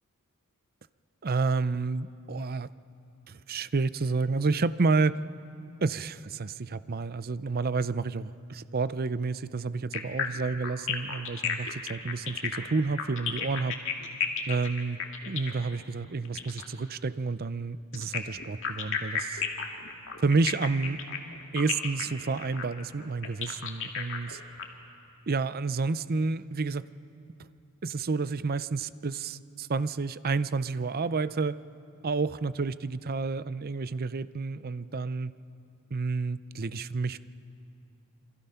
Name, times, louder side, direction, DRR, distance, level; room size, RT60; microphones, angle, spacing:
voice 1, 1.2-2.7 3.3-5.2 5.8-13.8 14.5-15.0 15.3-19.4 20.2-21.0 21.5-24.4 25.3-26.8 27.8-31.6 32.0-35.3 35.9-37.2, right 4 dB, 40° right, 15 dB, 0.6 m, -30 dB
sound 1, 9.9-16.7 17.9-24.6, left 7 dB, 60° left, 2.3 m, -33 dB
27.5 x 25.5 x 5.7 m, 2.6 s
head